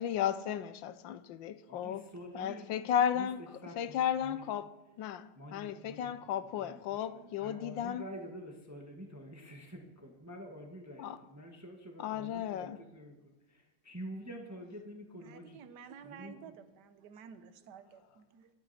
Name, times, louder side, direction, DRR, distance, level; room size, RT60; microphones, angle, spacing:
voice 1, 0.0-2.0 2.3-3.4 3.8-4.7 5.0-8.0 11.0-11.2 12.0-12.8, left 9 dB, 70° left, 1.2 m, -34 dB
voice 2, 1.7-4.4 5.3-15.6 16.0-16.5, equal, 10° right, 1.2 m, -48 dB
voice 3, 15.2-18.5, right 7 dB, 55° right, 1.4 m, -52 dB
23.5 x 9.9 x 4.3 m
omnidirectional pair, 2.4 m